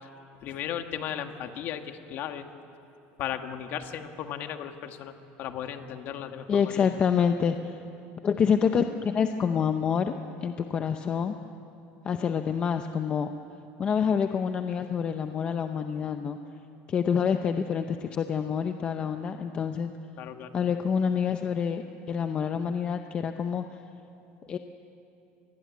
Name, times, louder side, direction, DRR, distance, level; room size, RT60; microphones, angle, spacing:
voice 1, 0.4-2.4 3.2-5.1 5.4-6.8 20.2-20.5, left 9 dB, 45° left, 7 dB, 1.6 m, -36 dB
voice 2, 6.5-7.8 8.2-10.1 10.4-11.3 12.0-13.3 13.8-16.4 16.9-19.9 20.5-23.6 24.5-24.6, left 7 dB, 25° left, 7 dB, 0.7 m, -27 dB
26.0 x 21.0 x 9.4 m, 2.7 s
cardioid pair, 175°, 5 cm